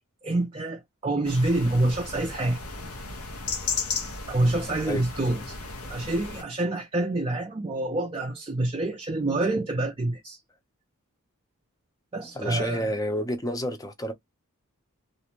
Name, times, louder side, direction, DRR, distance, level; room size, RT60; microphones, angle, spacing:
voice 1, 0.2-2.6 4.3-5.6 5.8-10.4 12.1-12.8, right 2 dB, 25° right, 0.4 m, -27 dB
sound 1, 1.2-6.4, left 4 dB, 85° left, 0.8 m, -35 dB
voice 2, 12.3-14.1, equal, 15° left, 0.6 m, -29 dB
2.5 x 2.0 x 2.9 m
head